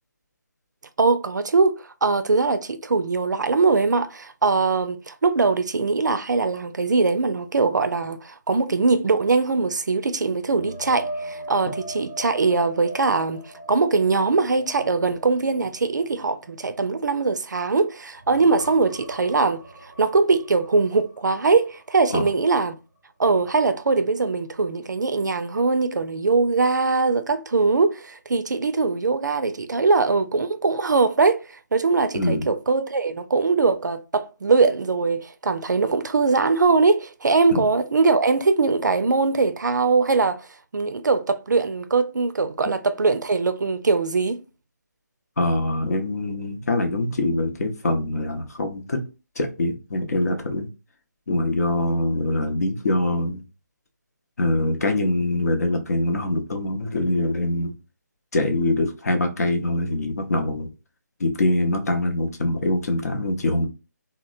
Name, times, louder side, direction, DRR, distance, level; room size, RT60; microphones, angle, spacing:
voice 1, 1.0-22.7 23.2-31.4 31.7-40.5 40.7-44.4, right 4 dB, 75° right, 0.4 m, -21 dB
sound 1, 10.4-17.8 18.2-22.0 22.4-22.6 26.0-26.1, right 1 dB, 5° right, 0.9 m, -40 dB
voice 2, 32.1-32.5 37.5-37.6 45.4-49.0 49.4-50.7 51.3-53.4 54.4-57.7 58.3-60.7 61.2-63.7, left 1 dB, 55° left, 0.7 m, -24 dB
2.9 x 2.0 x 2.4 m
figure-of-eight pair, 155°, 10 cm